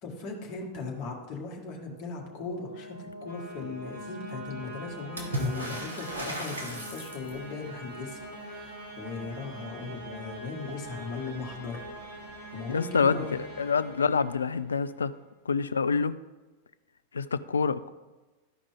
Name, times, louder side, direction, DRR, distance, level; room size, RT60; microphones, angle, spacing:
voice 1, 0.0-13.3, left 4 dB, 40° left, -1 dB, 1.8 m, -38 dB
sound 1, 1.8-14.8, right 1 dB, 60° right, 2.9 m, -43 dB
Water / Splash splatter, 5.2-7.6 10.8-10.9 11.2-12.0 13.0-13.1, right 1 dB, 75° right, 1.7 m, -36 dB
voice 2, 12.7-13.2 13.6-15.1 15.5-16.1 17.1-17.9, left 5 dB, 70° left, 15 dB, 0.3 m, -26 dB
13.5 x 5.0 x 3.5 m, 1.2 s
figure-of-eight pair, 90°, 0 cm